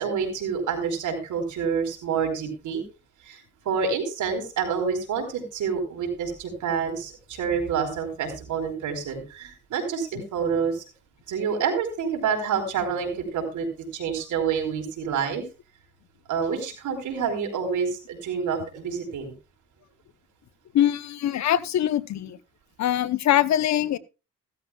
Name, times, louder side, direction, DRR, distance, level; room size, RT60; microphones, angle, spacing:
voice 1, 0.0-2.8 3.2-10.8 11.3-13.7 13.9-15.4 16.3-19.3, right 6 dB, 75° right, 5 dB, 4.7 m, -28 dB
voice 2, 20.7-22.4 22.8-24.0, left 11 dB, 65° left, 16 dB, 0.9 m, -23 dB
16.5 x 13.5 x 2.4 m, 0.29 s
cardioid pair, 90°, 30 cm